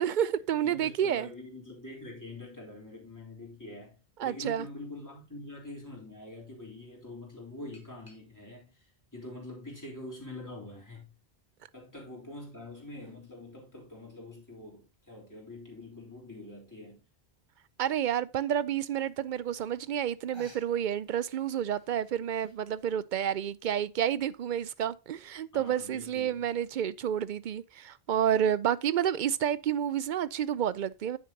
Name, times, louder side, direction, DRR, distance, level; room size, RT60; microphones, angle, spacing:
voice 1, 0.0-1.3 4.2-4.7 17.8-31.2, right 9 dB, 60° right, 0.6 m, -30 dB
voice 2, 0.6-11.1 11.7-17.0 25.5-26.4, left 2 dB, 15° left, 3.7 m, -45 dB
sound 1, 7.7-8.6 9.3-10.3 10.9-11.0 12.2-13.3 14.9-15.0 15.5-15.6 15.8-15.9 16.2-16.6 17.6-17.7 18.2-18.3 19.4-19.5 19.7-20.1 20.3-22.6, right 1 dB, 25° right, 1.8 m, -58 dB
9.6 x 7.4 x 2.8 m
omnidirectional pair, 1.0 m